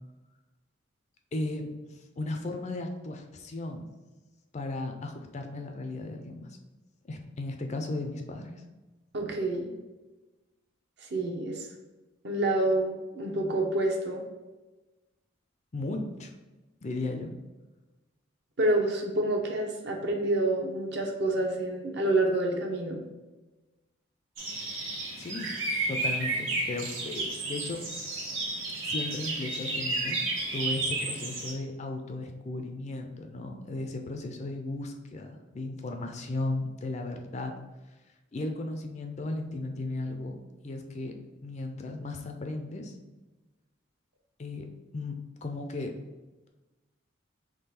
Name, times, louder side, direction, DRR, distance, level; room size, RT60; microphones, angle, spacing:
voice 1, 1.3-3.9 4.5-6.5 7.0-8.5 15.7-16.3 16.8-17.3 25.2-25.5 25.9-27.8 28.8-30.2 30.5-37.5 38.3-40.4 40.6-41.1 41.4-42.9 44.4-45.9, left 2 dB, 35° left, 4 dB, 0.4 m, -35 dB
voice 2, 9.1-9.7 11.0-11.7 12.2-14.2 18.6-23.0, right 1 dB, 55° right, 1 dB, 0.8 m, -28 dB
sound 1, 24.4-31.5, right 2 dB, 80° right, 1.3 m, -32 dB
3.7 x 3.1 x 4.3 m, 1.1 s
head